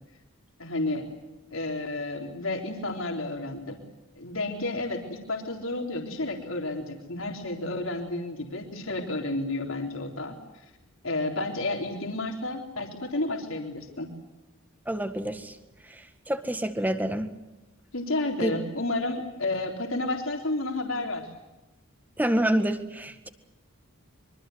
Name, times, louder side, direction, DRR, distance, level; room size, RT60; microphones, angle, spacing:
voice 1, 0.6-1.1 1.5-3.8 4.1-10.6 11.0-14.1 17.9-21.3, left 2 dB, 75° left, 2 dB, 3.8 m, -31 dB
voice 2, 14.9-15.5 16.3-17.3 18.4-18.5 22.2-23.3, right 1 dB, 10° right, 8 dB, 1.7 m, -27 dB
25.5 x 24.5 x 8.1 m, 1.0 s
head